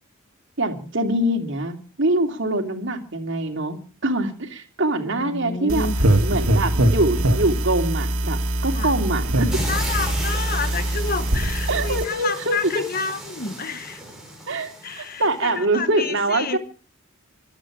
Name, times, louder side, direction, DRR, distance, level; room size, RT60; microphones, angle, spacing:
voice 1, 0.6-5.9 6.2-9.5 11.7-12.6 14.5-16.6, right 2 dB, 55° right, 2.8 m, -24 dB
voice 2, 4.9-6.0 8.7-9.0 9.7-14.0 14.8-16.6, left 4 dB, 45° left, 1.2 m, -30 dB
sound 1, 5.7-12.0, right 1 dB, 75° right, 2.3 m, -22 dB
sound 2, 9.5-15.4, right 1 dB, ahead, 5.9 m, -34 dB
25.0 x 9.1 x 6.1 m
head